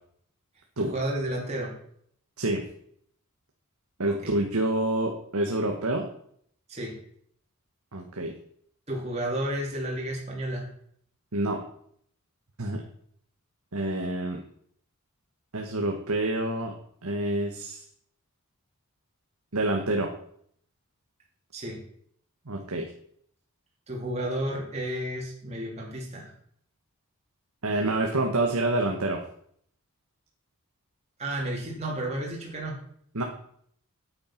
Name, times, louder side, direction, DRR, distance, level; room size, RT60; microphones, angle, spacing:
voice 1, 0.8-1.7 4.0-4.3 6.7-7.0 8.9-10.7 21.5-21.8 23.9-26.3 31.2-32.8, right 1 dB, 30° right, -3 dB, 3.1 m, -32 dB
voice 2, 4.0-6.1 7.9-8.3 11.3-11.6 12.6-12.8 13.7-14.4 15.5-16.7 17.0-17.8 19.5-20.1 22.5-22.9 27.6-29.2 33.1-33.2, right 2 dB, 80° right, 2 dB, 1.4 m, -27 dB
8.9 x 8.9 x 5.9 m, 0.65 s
head